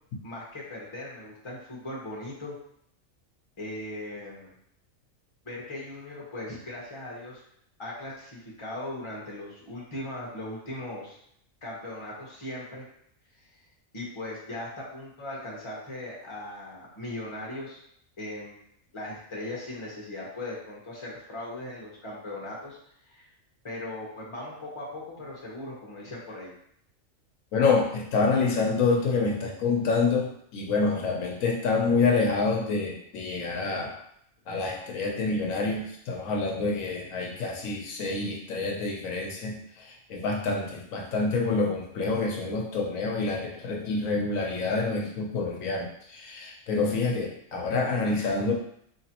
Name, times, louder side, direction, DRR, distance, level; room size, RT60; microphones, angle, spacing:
voice 1, 0.2-2.6 3.6-4.5 5.4-7.4 7.8-11.2 11.6-12.8 13.4-13.5 13.9-17.8 18.2-18.6 18.9-22.8 23.1-23.3 23.6-26.5, left 1 dB, 25° left, -4 dB, 1.0 m, -38 dB
voice 2, 27.5-33.9 34.5-48.5, left 4 dB, 80° left, 0 dB, 1.1 m, -27 dB
4.0 x 3.0 x 2.9 m, 0.69 s
omnidirectional pair, 1.4 m